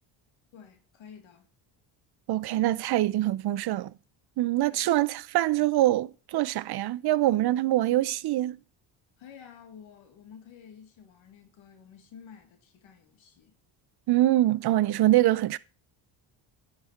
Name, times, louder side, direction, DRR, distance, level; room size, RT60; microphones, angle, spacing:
voice 1, 0.5-1.5 4.7-4.9 9.2-13.5, left 7 dB, 70° left, 2.3 m, -51 dB
voice 2, 2.3-3.9 4.4-8.6 14.1-15.6, right 15 dB, 55° right, 0.6 m, -24 dB
10.5 x 4.7 x 5.7 m
cardioid pair, 100°, 48 cm